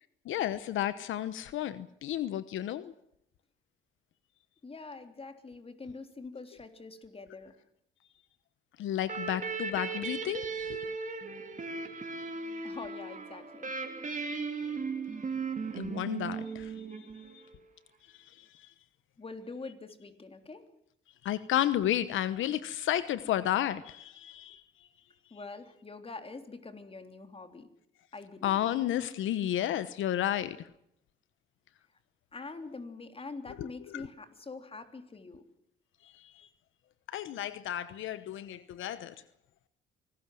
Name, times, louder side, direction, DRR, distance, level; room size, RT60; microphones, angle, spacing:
voice 1, 0.3-2.9 8.8-10.8 14.2-14.3 15.7-17.1 18.2-18.7 21.2-24.6 28.4-30.7 33.6-33.7 33.9-34.1 36.0-36.5 37.1-39.1, left 12 dB, 80° left, 1.1 m, -32 dB
voice 2, 4.6-7.6 12.6-13.7 19.2-20.6 25.3-27.7 28.1-28.6 32.3-35.4, left 3 dB, 30° left, 3.4 m, -45 dB
sound 1, 9.0-17.5, right 4 dB, 40° right, 3.2 m, -37 dB
25.0 x 19.0 x 7.7 m
cardioid pair, 90°, 20 cm